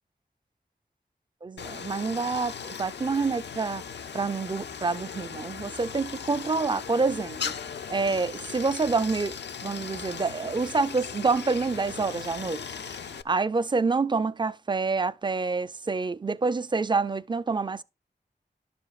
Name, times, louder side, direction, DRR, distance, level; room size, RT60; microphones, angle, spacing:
voice 1, 1.4-3.8 4.1-9.4 9.6-12.6 13.0-17.8, right 4 dB, 25° right, 0.4 m, -27 dB
Stream, 1.6-13.2, left 7 dB, 80° left, 0.4 m, -38 dB
11.0 x 6.9 x 2.4 m
cardioid pair, 45°, 18 cm